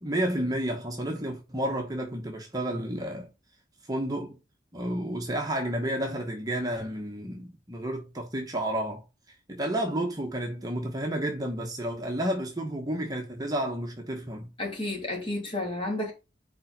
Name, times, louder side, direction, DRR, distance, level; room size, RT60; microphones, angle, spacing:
voice 1, 0.0-3.3 3.9-4.4 4.7-9.0 9.5-14.5, right 1 dB, 20° right, 1.1 m, -31 dB
voice 2, 14.6-16.1, left 1 dB, 30° left, 2.8 m, -31 dB
5.4 x 4.4 x 5.3 m
head